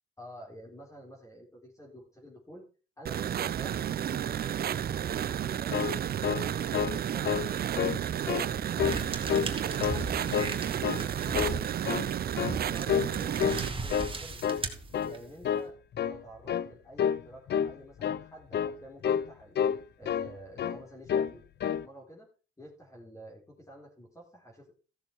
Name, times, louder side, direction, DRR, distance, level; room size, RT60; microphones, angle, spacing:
voice 1, 0.2-2.6 3.0-5.8 12.4-14.6 15.0-15.8 16.0-19.6 20.0-21.4 21.7-22.3 22.6-24.7, right 1 dB, 15° left, -1 dB, 3.8 m, -49 dB
sound 1, 3.1-13.7, right 10 dB, 50° right, 0.6 m, -32 dB
sound 2, 5.5-7.0 7.3-7.5 7.8-8.5 8.8-9.5 9.8-10.6 10.8-11.1 11.3-12.1 12.4-12.6 12.9-13.1 13.4-14.1 14.4-14.7 14.9-15.2 15.4-15.7 16.0-16.2 16.5-16.7 17.0-17.2 17.5-17.7 18.0-18.2 18.5-18.8 19.0-19.3 19.6-20.3 20.6-20.8 21.1-21.3 21.6-21.9, left 8 dB, 60° left, 0.8 m, -29 dB
sound 3, 8.8-15.4, right 3 dB, 25° right, 2.3 m, -38 dB
15.0 x 6.8 x 4.6 m, 0.35 s
cardioid pair, 90°, 20 cm